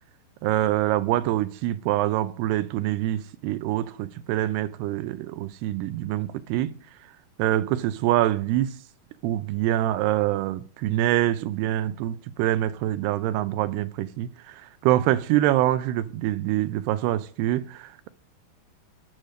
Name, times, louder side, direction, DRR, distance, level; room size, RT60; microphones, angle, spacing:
voice 1, 0.4-6.7 7.4-8.8 9.2-18.1, right 13 dB, 85° right, 2.7 m, -25 dB
11.0 x 6.3 x 6.6 m
omnidirectional pair, 4.6 m